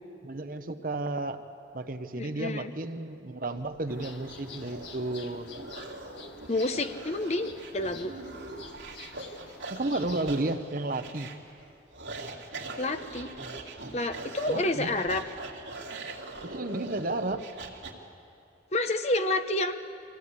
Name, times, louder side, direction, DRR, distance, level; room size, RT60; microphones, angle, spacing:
voice 1, 0.2-1.4 1.7-5.5 9.7-11.3 14.5-15.0 16.4-17.5, right 2 dB, 50° right, 8 dB, 0.9 m, -32 dB
voice 2, 2.1-2.7 6.5-8.1 12.8-13.3 13.9-15.2 18.7-19.8, left 2 dB, 35° left, 9 dB, 0.8 m, -29 dB
sound 1, 3.6-17.9, right 2 dB, 85° right, 2.4 m, -42 dB
sound 2, 3.9-10.5, left 4 dB, 85° left, 1.6 m, -48 dB
23.5 x 16.5 x 8.4 m, 2.6 s
head